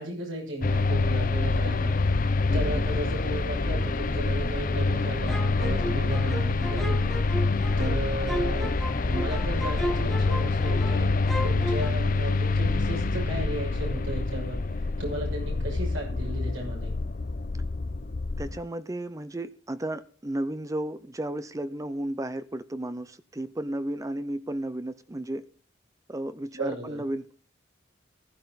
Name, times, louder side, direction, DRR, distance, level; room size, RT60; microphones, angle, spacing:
voice 1, 0.0-8.8 9.0-16.9 26.5-27.0, right 1 dB, 85° right, 6.4 m, -35 dB
sound 1, 0.6-18.6, left 3 dB, 45° left, 0.6 m, -26 dB
voice 2, 2.5-2.8 7.7-7.8 18.4-25.5 26.1-27.3, right 1 dB, 15° right, 0.6 m, -33 dB
sound 2, 5.3-11.0 11.3-11.9, equal, ahead, 1.0 m, -35 dB
15.5 x 12.5 x 4.0 m
head